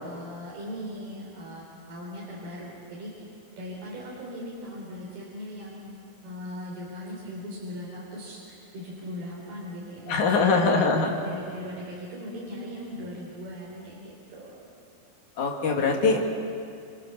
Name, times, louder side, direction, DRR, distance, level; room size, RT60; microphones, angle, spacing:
voice 1, 0.0-5.8 6.2-14.6, equal, 75° right, -5 dB, 6.1 m, -39 dB
voice 2, 10.1-11.1 15.4-16.2, left 4 dB, 55° left, -1 dB, 4.1 m, -22 dB
29.0 x 28.5 x 7.1 m, 2.4 s
omnidirectional pair, 4.4 m